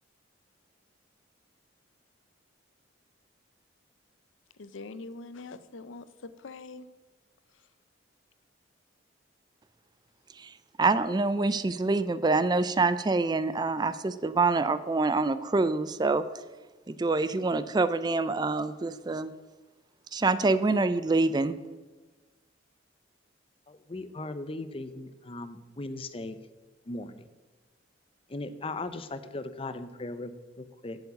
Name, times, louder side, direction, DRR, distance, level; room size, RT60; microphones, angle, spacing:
voice 1, 4.6-6.9, left 3 dB, 85° left, 0.6 m, -43 dB
voice 2, 10.8-16.3 16.9-19.3 20.1-21.6, right 3 dB, 20° right, 0.4 m, -26 dB
voice 3, 23.7-26.4 26.9-27.2 28.3-31.0, left 2 dB, 30° left, 0.6 m, -38 dB
7.8 x 7.1 x 8.5 m
head